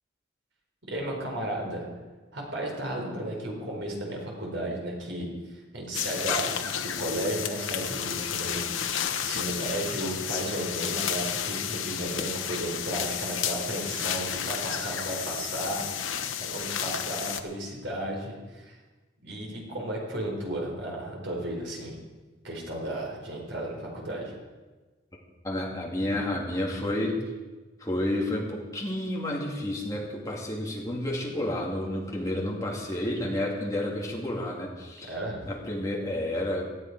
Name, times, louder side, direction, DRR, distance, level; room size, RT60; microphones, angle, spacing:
voice 1, 0.8-1.9 2.3-15.8 16.5-18.7 19.2-22.0 22.4-24.3 35.1-35.4, right 1 dB, 70° right, -1 dB, 4.2 m, -34 dB
sound 1, 5.9-17.4, left 8 dB, 85° left, 1.0 m, -32 dB
voice 2, 25.4-27.2 27.8-35.1 35.5-36.6, left 1 dB, 15° left, -2 dB, 2.4 m, -30 dB
18.0 x 12.5 x 4.7 m, 1.3 s
head